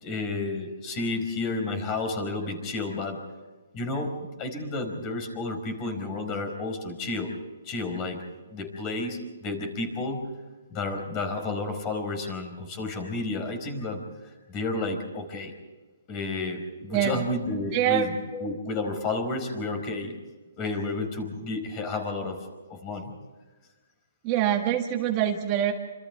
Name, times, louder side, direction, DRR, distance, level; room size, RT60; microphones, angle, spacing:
voice 1, 0.0-3.2 3.7-4.1 4.4-7.3 7.6-8.2 8.5-10.3 10.7-15.5 16.1-20.2 20.6-22.4 22.7-23.2, left 3 dB, 25° left, 6 dB, 4.8 m, -31 dB
voice 2, 16.9-17.2 17.7-18.1 24.2-25.7, right 11 dB, 25° right, 3 dB, 1.7 m, -24 dB
27.5 x 26.5 x 3.5 m, 1.3 s
hypercardioid pair, 160°, 0 cm